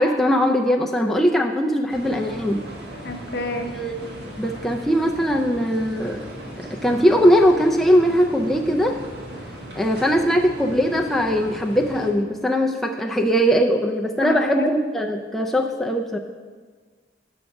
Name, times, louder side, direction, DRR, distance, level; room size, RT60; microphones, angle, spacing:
voice 1, 0.0-2.6 3.7-3.9 4.4-6.2 6.7-9.0 9.8-16.2, equal, ahead, 0 dB, 0.3 m, -20 dB
sound 1, 1.9-12.1, right 1 dB, 70° right, 1.5 m, -37 dB
voice 2, 3.0-3.7 14.2-14.7, left 2 dB, 65° left, 4 dB, 0.8 m, -28 dB
8.0 x 5.8 x 5.2 m, 1.5 s
head